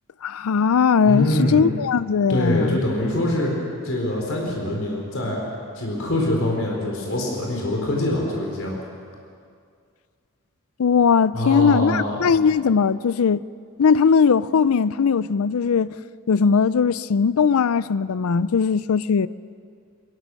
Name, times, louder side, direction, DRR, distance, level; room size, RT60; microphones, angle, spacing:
voice 1, 0.2-2.8 10.8-13.4 13.8-16.0 16.3-19.3, left 6 dB, 85° left, 0.5 m, -19 dB
voice 2, 1.1-1.7 2.3-3.5 3.8-5.4 5.7-8.8 11.3-12.3, left 1 dB, 70° left, 4.1 m, -24 dB
23.5 x 20.5 x 6.3 m
head